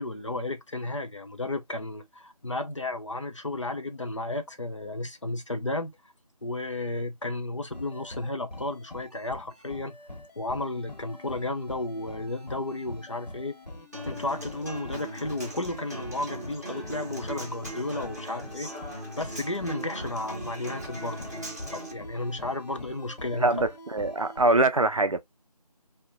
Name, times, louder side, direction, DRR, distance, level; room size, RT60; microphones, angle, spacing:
voice 1, 0.0-6.0 6.4-10.0 10.4-13.5 14.1-18.7 19.2-21.2 21.7-23.6, left 2 dB, 50° left, 0.5 m, -33 dB
sound 1, 7.7-24.6, left 2 dB, 85° left, 0.9 m, -45 dB
Human voice / Acoustic guitar, 13.9-21.9, right 1 dB, 25° right, 0.7 m, -39 dB
voice 2, 23.4-25.2, right 2 dB, 55° right, 0.4 m, -23 dB
2.8 x 2.1 x 2.4 m
figure-of-eight pair, 170°, 20 cm